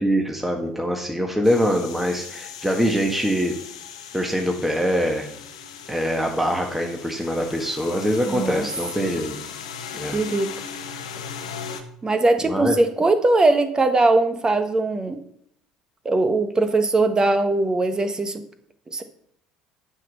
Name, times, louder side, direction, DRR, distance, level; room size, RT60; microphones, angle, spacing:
voice 1, 0.0-3.5 4.1-5.3 5.9-9.3 9.9-10.2 12.4-12.8, equal, 5° right, 2 dB, 1.6 m, -23 dB
sound 1, 1.4-11.8, left 7 dB, 75° left, 1.0 m, -38 dB
voice 2, 8.3-8.6 10.1-10.5 12.0-15.2 16.0-18.4 18.9-19.0, right 2 dB, 20° right, 9 dB, 1.3 m, -20 dB
10.5 x 6.2 x 5.5 m, 0.68 s
figure-of-eight pair, 60°, 3 cm